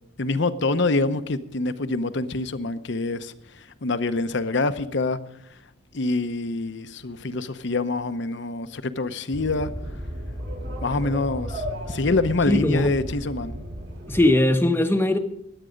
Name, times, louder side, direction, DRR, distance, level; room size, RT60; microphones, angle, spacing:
voice 1, 0.2-5.2 5.9-9.7 10.8-13.5, left 3 dB, 60° left, 0.8 m, -26 dB
sound 1, 9.3-14.3, equal, 60° right, 4.9 m, -34 dB
voice 2, 12.5-12.9 14.1-15.2, left 1 dB, 10° left, 0.9 m, -20 dB
22.0 x 9.0 x 5.2 m
head